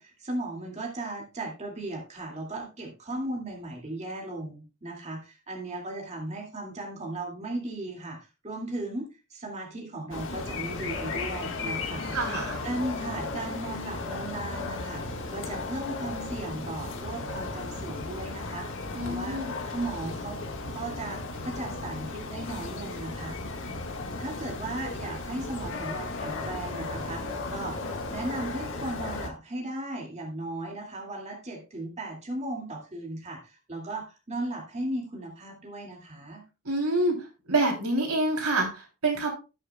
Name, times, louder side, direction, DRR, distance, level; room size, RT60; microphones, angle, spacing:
voice 1, 0.0-12.2 12.6-15.0 15.3-18.7 19.0-19.4 19.7-20.4 20.7-23.4 24.2-27.8 28.1-36.4, right 1 dB, 30° right, 0 dB, 2.3 m, -36 dB
sound 1, 10.1-29.3, left 3 dB, 60° left, 1.7 m, -35 dB
voice 2, 12.1-12.6 18.9-19.5 36.6-37.2 37.5-39.3, right 2 dB, 85° right, 1 dB, 3.3 m, -27 dB
17.5 x 6.5 x 2.3 m, 0.30 s
head